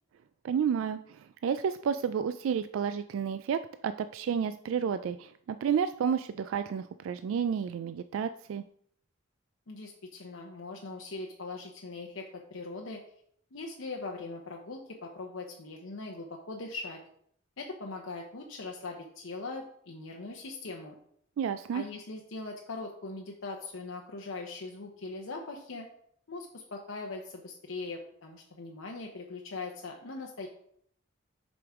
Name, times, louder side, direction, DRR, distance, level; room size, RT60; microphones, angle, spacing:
voice 1, 0.4-8.6 21.4-21.8, right 7 dB, 75° right, 11 dB, 0.3 m, -31 dB
voice 2, 9.7-13.0 13.5-17.0 17.6-21.0 21.7-25.9 26.3-30.5, left 3 dB, 80° left, 1 dB, 0.8 m, -41 dB
7.8 x 5.2 x 3.6 m, 0.66 s
head